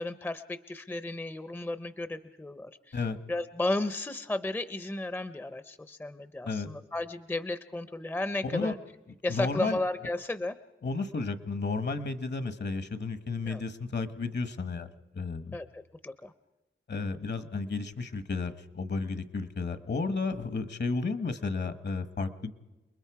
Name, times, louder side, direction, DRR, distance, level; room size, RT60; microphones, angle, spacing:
voice 1, 0.0-3.0 3.3-8.8 9.2-10.6 13.5-13.6 15.5-16.3, left 2 dB, 10° left, 13 dB, 0.6 m, -34 dB
voice 2, 9.3-9.8 10.8-14.9 15.1-15.5 16.9-22.5, left 4 dB, 60° left, 12 dB, 1.2 m, -32 dB
28.5 x 21.0 x 4.7 m, 1.1 s
wide cardioid pair, 135°, 20 cm